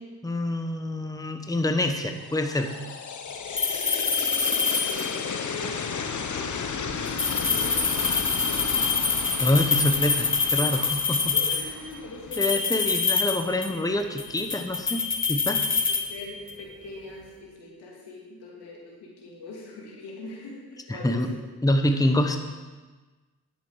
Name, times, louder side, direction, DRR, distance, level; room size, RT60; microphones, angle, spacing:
voice 1, 0.2-2.7 9.4-11.3 12.4-15.0 15.3-15.6 20.9-21.3 21.6-22.4, left 1 dB, 10° left, 5 dB, 1.0 m, -26 dB
sound 1, 2.2-13.2, left 5 dB, 50° left, 1.0 m, -34 dB
sound 2, 3.6-5.3 7.1-11.8 12.3-13.9 14.2-16.6, left 4 dB, 30° left, 1.2 m, -26 dB
voice 2, 4.9-9.0 11.3-12.9 15.7-15.8 16.1-21.4 21.9-22.1, left 2 dB, 85° left, -2 dB, 2.5 m, -42 dB
10.5 x 7.7 x 4.8 m, 1.3 s
cardioid pair, 55°, 39 cm